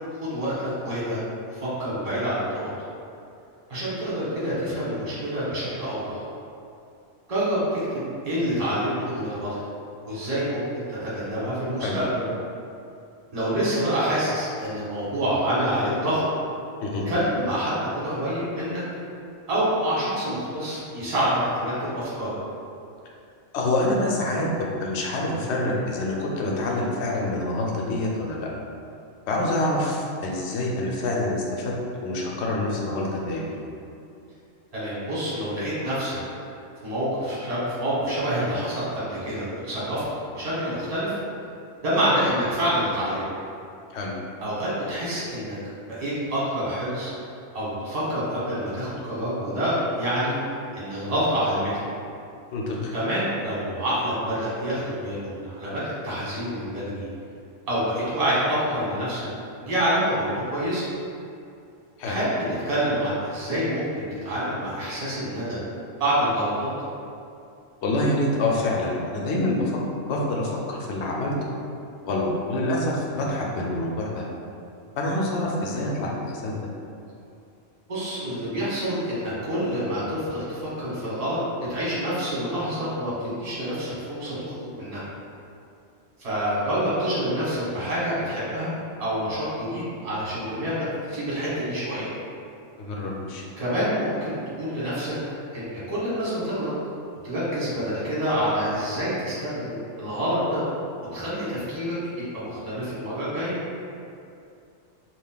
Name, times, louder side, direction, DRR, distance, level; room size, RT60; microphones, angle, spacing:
voice 1, 0.2-1.2 1.5-2.7 3.7-6.2 7.3-9.6 10.1-12.2 13.3-16.2 17.1-18.8 19.5-22.3 34.7-36.2 36.8-40.0 40.3-41.1 41.8-43.3 44.4-45.6 45.9-47.1 47.5-50.4 50.7-51.7 52.9-57.1 57.7-59.3 59.6-60.9 62.0-65.6 66.0-66.7 77.9-81.4 81.7-85.1 86.2-88.7 89.0-92.1 93.6-95.1 95.5-96.7 97.2-100.6 101.1-101.9 102.3-103.6, equal, 30° right, -9 dB, 0.9 m, -27 dB
voice 2, 23.5-28.5 29.3-31.7 32.0-33.6 43.9-44.1 52.5-52.9 62.0-62.2 67.8-69.7 70.0-71.3 72.0-74.2 75.0-76.6 92.8-93.4, left 1 dB, 65° left, -2 dB, 0.8 m, -26 dB
2.5 x 2.3 x 3.7 m, 2.6 s
omnidirectional pair, 1.4 m